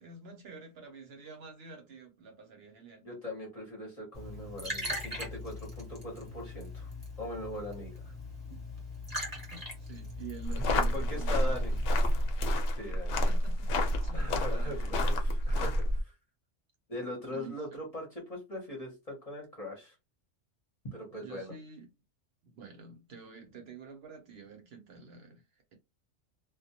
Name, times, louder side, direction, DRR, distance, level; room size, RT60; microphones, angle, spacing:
voice 1, 0.0-3.0 9.4-11.8 13.1-15.0 15.3-15.6 17.3-17.6 21.2-21.9 22.4-25.7, right 5 dB, 65° right, 0.8 m, -48 dB
voice 2, 3.0-6.9 7.2-8.1 10.7-11.7 12.7-13.1 14.1-16.1 16.9-19.9 20.9-21.5, left 1 dB, 35° left, 0.7 m, -41 dB
Liquid, 4.1-12.2, left 1 dB, 20° right, 0.8 m, -41 dB
sound 1, 10.4-16.0, left 1 dB, 75° left, 0.9 m, -29 dB
2.2 x 2.0 x 2.7 m
omnidirectional pair, 1.2 m